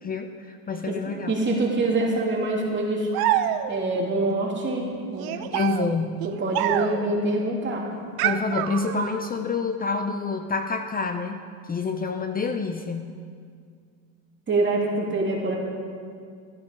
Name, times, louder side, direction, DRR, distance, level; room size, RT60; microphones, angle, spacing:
voice 1, 0.0-1.3 5.3-6.3 8.2-11.4 11.7-13.1, left 4 dB, 20° left, 7 dB, 0.6 m, -28 dB
voice 2, 1.3-3.1 3.7-5.3 6.2-7.9 14.5-15.6, right 2 dB, 25° right, -2 dB, 3.0 m, -25 dB
sound 1, 3.1-4.0 5.2-7.2 8.2-9.3, right 11 dB, 55° right, 0.9 m, -27 dB
15.0 x 13.0 x 5.3 m, 2.2 s
supercardioid pair, 110°, 43 cm